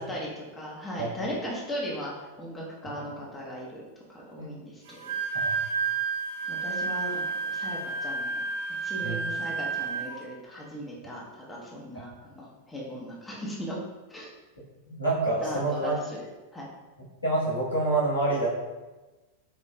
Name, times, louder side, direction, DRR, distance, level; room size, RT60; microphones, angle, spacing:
voice 1, 0.0-3.8 4.1-5.0 5.3-5.6 6.5-13.8 14.1-14.3 15.4-16.2 16.5-16.7, equal, 10° left, -5 dB, 0.8 m, -38 dB
Wind instrument woodwind instrument, 4.9-10.2, right 4 dB, 55° right, 0.4 m, -31 dB
voice 2, 14.9-15.9 17.2-18.5, right 2 dB, 80° left, -7 dB, 1.1 m, -27 dB
4.1 x 2.8 x 2.2 m, 1.2 s
figure-of-eight pair, 90°, 0 cm